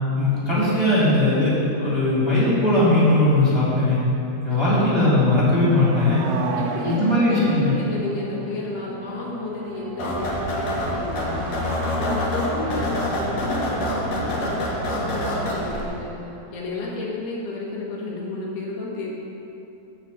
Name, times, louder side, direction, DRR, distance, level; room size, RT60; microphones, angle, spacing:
voice 1, 0.1-4.0 4.4-6.2 6.8-7.7, left 1 dB, 10° right, -10 dB, 1.4 m, -19 dB
voice 2, 4.5-5.0 6.5-16.2 16.5-19.1, left 2 dB, 70° left, -4 dB, 3.4 m, -32 dB
sound 1, 5.4-16.5 16.8-16.9, right 3 dB, 85° right, 2.9 m, -36 dB
sound 2, 10.0-15.8, left 1 dB, 55° left, 2.0 m, -26 dB
11.5 x 4.1 x 7.9 m, 2.9 s
omnidirectional pair, 4.9 m